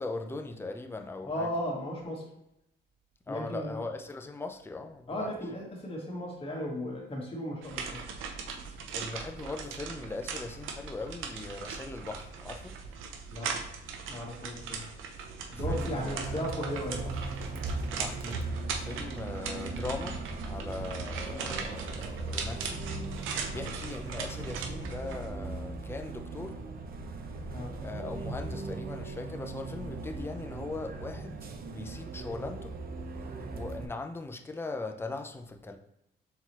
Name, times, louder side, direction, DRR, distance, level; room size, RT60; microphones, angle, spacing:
voice 1, 0.0-1.5 3.3-5.3 8.9-12.7 15.5-16.5 18.0-18.5 18.7-22.8 23.5-26.6 27.8-31.4 31.7-32.7 33.5-35.8, left 3 dB, 10° left, 5 dB, 0.6 m, -40 dB
voice 2, 1.2-2.3 3.3-3.8 5.1-8.0 13.3-13.6 14.1-14.8 15.5-17.2 23.6-23.8 27.5-27.7, left 1 dB, 30° left, -2 dB, 1.7 m, -36 dB
sound 1, 7.6-25.3, right 5 dB, 90° right, 0.7 m, -40 dB
Bus, 15.6-33.9, right 3 dB, 50° right, 0.7 m, -38 dB
4.3 x 3.8 x 3.0 m, 0.85 s
cardioid pair, 90°, 20 cm